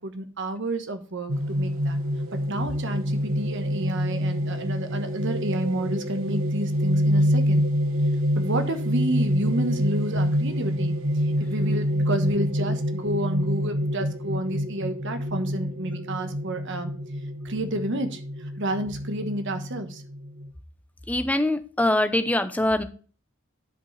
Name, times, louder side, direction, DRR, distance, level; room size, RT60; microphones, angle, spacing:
voice 1, 0.0-2.0 2.4-7.7 8.3-10.9 11.2-16.9 17.4-18.2 18.6-20.0, right 1 dB, 60° right, 7 dB, 1.2 m, -30 dB
sound 1, 1.3-20.5, equal, 85° right, 1.1 m, -26 dB
voice 2, 21.1-22.8, left 1 dB, 5° left, 10 dB, 0.7 m, -23 dB
10.5 x 5.2 x 3.2 m, 0.38 s
head